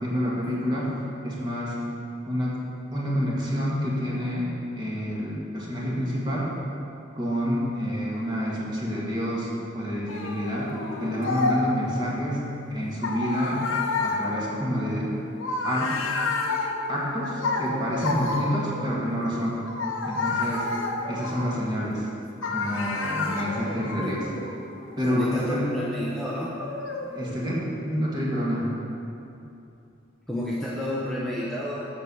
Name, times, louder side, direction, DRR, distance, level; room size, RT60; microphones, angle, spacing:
voice 1, 0.0-0.9 1.2-1.8 2.3-2.6 2.9-4.5 4.8-6.5 7.2-12.4 12.7-13.6 14.0-15.1 15.6-16.0 16.9-19.6 20.0-20.7 21.1-22.0 22.5-24.3 25.0-25.7 27.1-28.7, equal, 20° right, -5 dB, 1.7 m, -28 dB
sound 1, 10.1-11.9 13.0-18.9 19.7-22.0 22.4-27.5, left 3 dB, 85° left, 1.0 m, -30 dB
voice 2, 23.5-24.1 25.0-26.5 30.3-31.9, left 1 dB, ahead, -8 dB, 0.8 m, -31 dB
8.2 x 6.9 x 6.3 m, 2.8 s
head